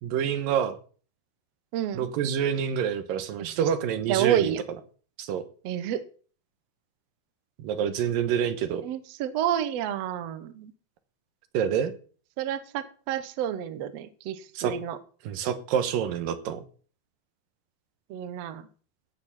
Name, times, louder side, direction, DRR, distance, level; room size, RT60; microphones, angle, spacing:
voice 1, 0.0-0.8 1.9-4.5 5.2-5.4 7.6-8.8 11.5-11.9 14.6-14.7 15.2-16.6, right 8 dB, 85° right, 9 dB, 2.8 m, -27 dB
voice 2, 1.7-2.1 3.4-3.7 4.1-4.6 5.6-6.0 8.8-10.7 12.4-15.0 18.1-18.7, right 10 dB, 65° right, 12 dB, 1.8 m, -29 dB
16.5 x 6.8 x 5.9 m, 0.41 s
omnidirectional pair, 3.9 m